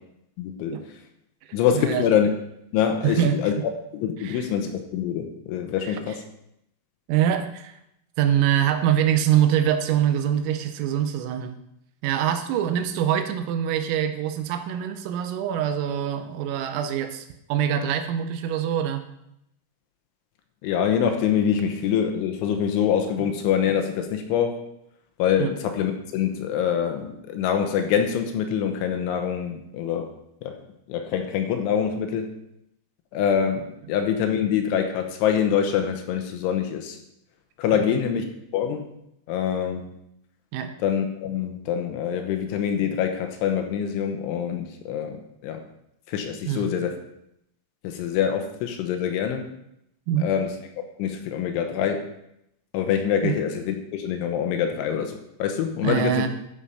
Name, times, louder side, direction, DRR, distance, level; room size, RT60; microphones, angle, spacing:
voice 1, 0.4-0.8 1.5-2.3 2.7-3.5 3.9-6.2 20.6-24.6 25.2-30.1 30.4-30.6 30.9-32.3 33.1-37.0 37.6-38.2 38.5-38.9 39.3-39.9 40.8-45.6 46.1-46.9 47.8-49.5 50.2-50.6 51.0-52.1 52.7-56.3, left 8 dB, 75° left, 5 dB, 3.2 m, -25 dB
voice 2, 1.7-2.1 3.0-3.6 4.2-4.5 5.8-6.0 7.1-7.7 8.2-11.5 12.0-19.0 23.2-23.3 25.4-25.5 37.7-37.9 40.5-40.7 46.5-46.7 50.1-50.3 53.2-53.4 55.8-56.3, right 10 dB, 85° right, 7 dB, 3.6 m, -24 dB
13.5 x 5.8 x 5.6 m, 0.79 s
omnidirectional pair, 5.9 m